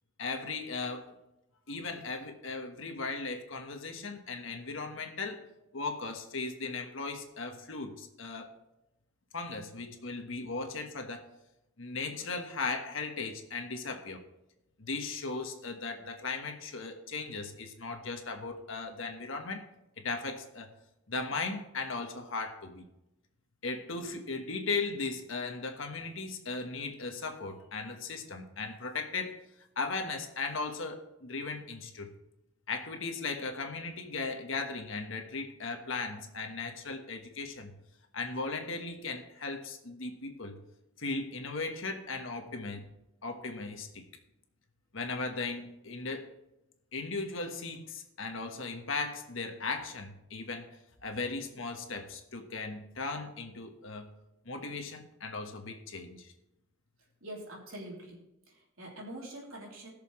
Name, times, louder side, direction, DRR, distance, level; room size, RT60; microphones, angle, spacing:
voice 1, 0.2-1.1 1.7-5.4 5.7-8.5 9.3-11.3 11.8-14.2 14.8-19.6 20.0-20.7 21.1-22.9 23.6-29.4 29.8-32.1 32.7-37.7 38.1-40.6 41.0-42.8 43.2-44.0 44.9-46.3 46.9-50.8 51.0-54.1 54.4-56.3, left 3 dB, 70° left, 5 dB, 1.4 m, -37 dB
voice 2, 57.2-59.9, right 1 dB, 75° right, -2 dB, 3.2 m, -45 dB
19.5 x 6.8 x 3.2 m, 0.91 s
head